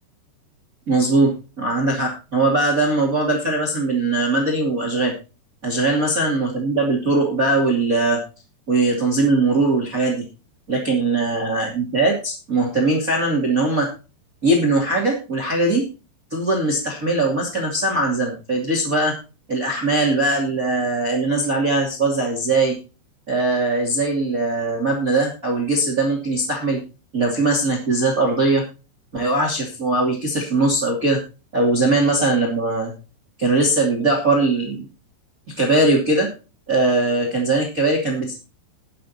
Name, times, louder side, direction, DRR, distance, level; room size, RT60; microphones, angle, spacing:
voice 1, 0.9-5.1 5.6-8.2 8.7-10.2 10.7-13.9 14.4-15.9 16.3-19.1 19.5-22.7 23.3-26.8 27.1-28.6 29.1-31.2 31.5-32.9 33.4-34.8 35.6-36.3 36.7-38.3, right 2 dB, 25° right, 0 dB, 2.2 m, -20 dB
20.0 x 7.5 x 2.7 m, 0.32 s
omnidirectional pair, 5.2 m